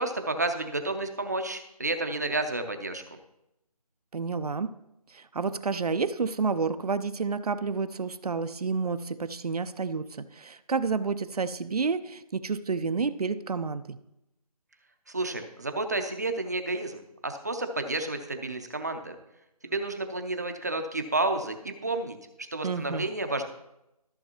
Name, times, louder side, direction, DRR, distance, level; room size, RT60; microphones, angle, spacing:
voice 1, 0.0-3.0 15.1-19.2 19.6-23.4, right 2 dB, 25° right, 6 dB, 0.6 m, -31 dB
voice 2, 4.1-4.7 5.1-14.0 22.6-23.1, right 4 dB, 70° right, 12 dB, 0.5 m, -30 dB
13.5 x 6.4 x 2.9 m, 0.88 s
figure-of-eight pair, 170°, 20 cm